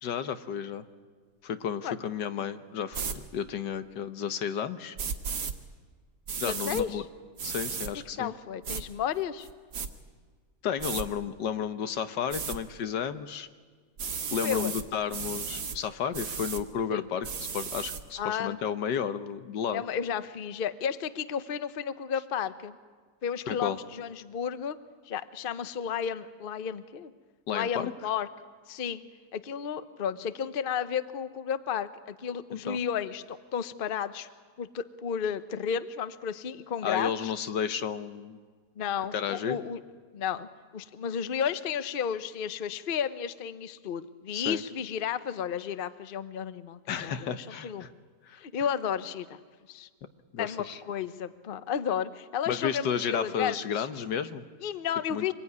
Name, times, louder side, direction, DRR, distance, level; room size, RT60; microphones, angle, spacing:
voice 1, 0.0-0.8 1.4-5.0 6.4-7.0 7.4-8.3 10.6-13.5 14.3-17.3 17.5-19.8 23.5-23.8 27.5-27.9 32.7-32.8 36.8-38.4 39.1-39.6 44.3-44.6 46.9-47.9 48.3-48.4 50.3-50.8 52.5-54.4 55.1-55.3, left 8 dB, 85° left, 10 dB, 1.7 m, -32 dB
sound 1, 2.9-3.2 5.0-5.5 6.3-6.8 7.4-7.9 8.6-8.8 9.4-9.9 10.8-11.0 12.3-12.6 14.0-14.8 15.1-15.8 16.1-16.6 17.2-18.0, right 6 dB, 70° right, 2.0 m, -34 dB
voice 2, 6.4-7.0 8.2-9.5 14.4-14.7 16.9-17.1 18.2-18.6 19.7-22.8 23.2-24.8 25.1-27.1 27.5-28.3 28.7-29.0 29.3-34.3 34.6-37.3 38.8-39.8 40.1-47.9 48.4-49.4 49.7-49.9 50.4-53.9 54.6-55.3, left 8 dB, 45° left, 13 dB, 0.8 m, -33 dB
25.5 x 21.0 x 9.6 m, 1.5 s
omnidirectional pair, 1.8 m